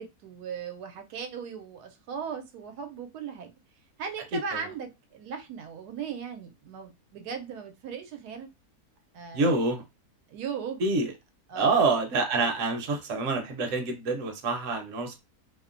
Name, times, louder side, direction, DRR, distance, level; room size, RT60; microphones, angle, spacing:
voice 1, 0.0-3.5 4.0-8.5 9.1-9.5 10.3-10.8 11.5-11.8, right 6 dB, 90° right, 1.1 m, -38 dB
voice 2, 9.3-9.8 10.8-11.1 11.5-15.2, right 3 dB, 65° right, 1.0 m, -26 dB
2.8 x 2.1 x 2.4 m
omnidirectional pair, 1.6 m